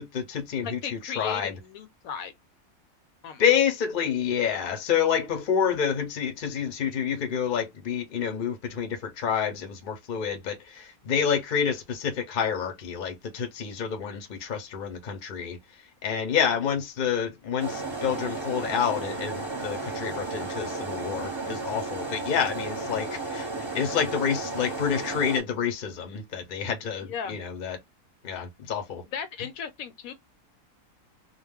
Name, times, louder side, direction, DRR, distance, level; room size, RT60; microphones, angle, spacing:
voice 1, 0.0-1.6 3.4-15.6 16.0-27.8 28.2-29.0, left 7 dB, 50° left, 0.6 m, -28 dB
voice 2, 0.6-2.3 3.2-3.4 27.0-27.4 29.0-30.1, left 7 dB, 75° left, 1.0 m, -36 dB
sound 1, 17.6-25.4, right 3 dB, 25° right, 0.9 m, -33 dB
2.4 x 2.1 x 3.4 m
omnidirectional pair, 1.5 m